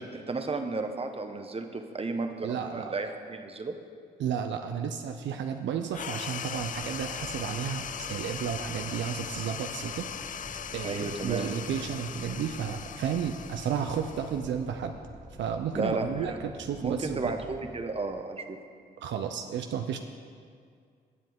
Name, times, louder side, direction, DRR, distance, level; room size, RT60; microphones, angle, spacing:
voice 1, 0.0-3.8 10.8-11.5 15.7-16.4 16.8-18.6, right 3 dB, 30° right, 6 dB, 1.1 m, -33 dB
voice 2, 2.4-2.9 4.2-10.1 10.7-15.0 15.4-17.3 19.0-20.0, right 8 dB, 75° right, 6 dB, 0.5 m, -32 dB
sound 1, 5.9-14.8, left 8 dB, 45° left, 0.4 m, -39 dB
sound 2, 6.5-17.8, right 1 dB, 60° right, 1.8 m, -48 dB
18.0 x 7.5 x 3.6 m, 2.2 s
supercardioid pair, 55°, 19 cm